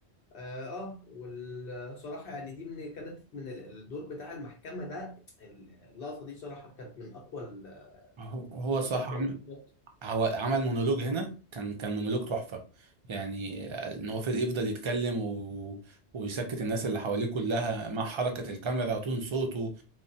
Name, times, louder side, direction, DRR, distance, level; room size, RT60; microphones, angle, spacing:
voice 1, 0.3-8.1 8.9-9.6, left 2 dB, 65° left, 0.7 m, -42 dB
voice 2, 8.2-9.3 10.0-12.6 13.1-15.8 16.1-19.7, right 3 dB, 50° right, 0.3 m, -31 dB
3.1 x 2.0 x 2.6 m
omnidirectional pair, 1.2 m